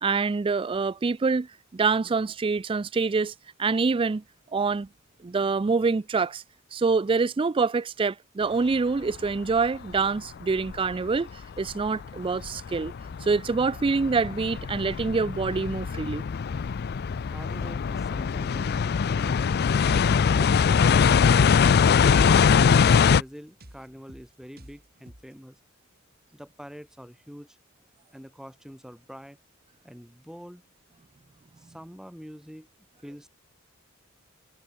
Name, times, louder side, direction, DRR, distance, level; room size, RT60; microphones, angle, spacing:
voice 1, 0.0-1.5 1.7-3.3 3.6-4.2 4.5-4.9 5.2-6.4 6.7-11.3 11.6-12.9 13.2-16.2, right 4 dB, 25° right, 0.4 m, -25 dB
sound 1, 9.1-9.2 9.9-10.0 10.5-11.2 11.6-23.2, left 6 dB, 45° left, 0.4 m, -22 dB
voice 2, 17.3-19.8 22.9-25.6 26.3-27.6 28.1-29.4 29.8-30.6 31.6-32.7 33.0-33.3, equal, ahead, 4.8 m, -45 dB
sound 2, 20.7-25.4, right 1 dB, 45° right, 6.3 m, -51 dB
head